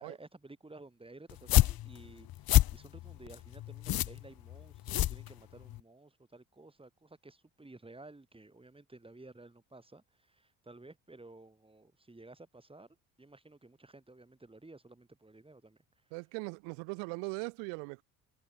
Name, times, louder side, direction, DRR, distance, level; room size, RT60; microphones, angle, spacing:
voice 1, 0.0-16.1, right 2 dB, 15° right, 5.0 m, -54 dB
sound 1, 1.3-5.8, left 14 dB, 60° left, 1.3 m, -28 dB
voice 2, 16.1-18.0, right 40 dB or more, 85° right, 2.9 m, -40 dB
supercardioid pair, 75°, 41 cm